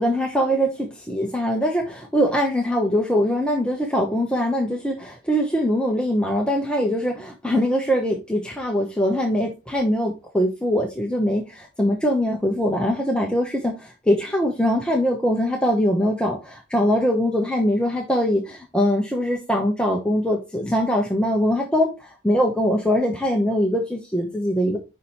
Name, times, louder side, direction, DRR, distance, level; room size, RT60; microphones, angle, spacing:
voice 1, 0.0-24.8, equal, 5° left, -1 dB, 0.9 m, -22 dB
5.6 x 4.9 x 4.2 m, 0.26 s
head